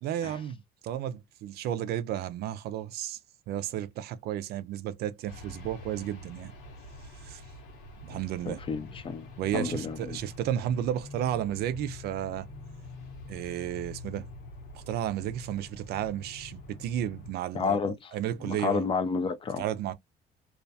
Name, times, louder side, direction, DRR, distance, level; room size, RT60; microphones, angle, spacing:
voice 1, 0.0-3.2 3.5-6.5 7.2-7.4 8.0-8.6 9.4-12.5 13.3-14.3 14.7-18.9 19.6-19.9, right 11 dB, 70° right, 0.4 m, -33 dB
sound 1, 5.3-17.3, left 2 dB, 80° left, 1.1 m, -46 dB
voice 2, 8.5-9.3 9.5-10.2 17.5-18.1 18.5-19.6, left 5 dB, 30° left, 0.4 m, -30 dB
2.4 x 2.2 x 2.5 m
cardioid pair, 110°, 17 cm